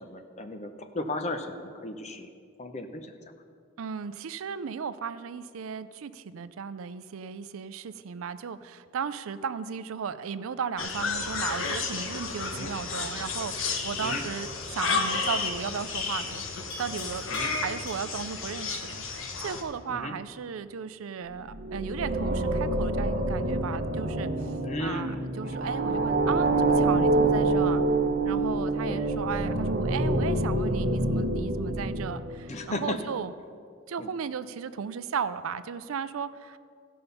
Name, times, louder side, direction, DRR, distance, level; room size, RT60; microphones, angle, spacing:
voice 1, 0.0-2.3 2.6-3.1 12.5-12.7 14.0-14.2 17.3-17.5 19.9-20.1 24.6-25.6 28.8-29.0 32.5-33.0 34.0-34.1, left 1 dB, 35° left, 6 dB, 0.7 m, -35 dB
voice 2, 3.8-16.4 16.8-24.5 24.8-27.8 28.2-33.3 33.9-36.6, right 6 dB, 85° right, 14 dB, 0.4 m, -35 dB
sound 1, 10.8-19.6, left 4 dB, 75° left, 1.0 m, -32 dB
Livestock farm animals working animals, 13.9-14.2 16.7-18.3, left 1 dB, 55° left, 2.4 m, -45 dB
sound 2, 21.4-32.6, right 2 dB, 45° right, 0.8 m, -26 dB
15.0 x 5.5 x 5.5 m, 2.2 s
head